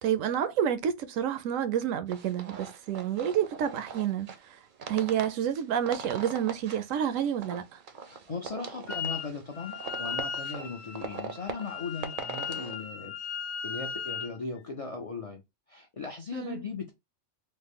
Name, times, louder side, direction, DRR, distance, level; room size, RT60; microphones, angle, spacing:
voice 1, 0.0-4.3 4.9-7.6 16.3-16.6, right 9 dB, 85° right, 1.0 m, -29 dB
sound 1, 2.1-12.8, right 6 dB, 60° right, 0.5 m, -42 dB
voice 2, 8.1-13.1 13.6-15.4 15.7-16.9, left 4 dB, 55° left, 0.3 m, -38 dB
Wind instrument woodwind instrument, 8.9-9.3 9.5-14.4, left 7 dB, 75° left, 0.9 m, -37 dB
3.1 x 2.1 x 3.4 m
omnidirectional pair, 1.3 m